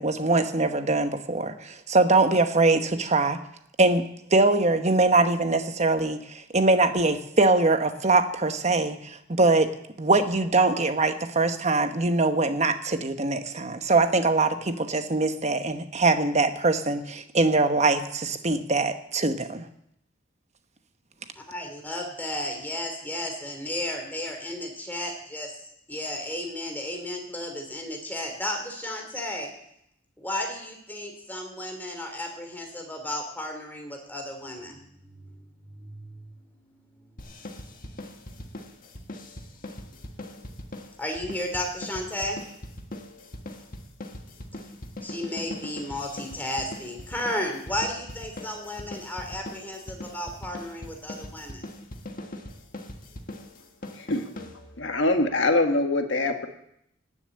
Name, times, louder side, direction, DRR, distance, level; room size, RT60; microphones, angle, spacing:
voice 1, 0.0-3.4 3.8-4.1 4.3-19.7, right 3 dB, 35° right, 8 dB, 1.1 m, -23 dB
voice 2, 21.4-25.5 25.9-29.5 30.2-35.3 35.6-36.4 36.8-38.5 41.0-42.4 45.0-51.6, left 1 dB, 10° left, 2 dB, 3.1 m, -34 dB
sound 1, 37.2-55.0, left 1 dB, 45° left, 1.7 m, -41 dB
voice 3, 53.9-54.3 54.8-56.5, left 2 dB, 70° left, 5 dB, 1.7 m, -24 dB
18.5 x 7.0 x 8.6 m, 0.76 s
head